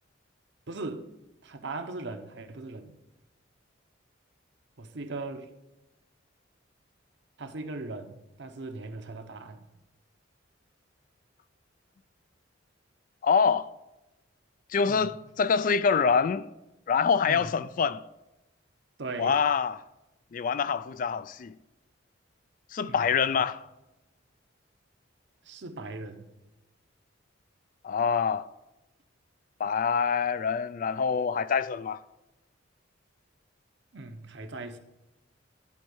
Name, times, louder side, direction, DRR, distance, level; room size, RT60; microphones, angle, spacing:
voice 1, 0.7-1.1 1.4-2.9 4.8-5.5 7.4-9.7 14.8-15.2 17.2-17.6 19.0-19.4 22.8-23.1 23.4-23.5 25.4-26.3 33.9-34.8, right 3 dB, 60° right, 0.8 m, -39 dB
voice 2, 13.2-13.7 14.7-16.5 16.9-18.0 19.2-19.8 20.3-21.5 22.7-23.6 27.8-28.5 29.6-32.0, left 6 dB, 40° left, 0.3 m, -25 dB
11.0 x 4.4 x 5.4 m
head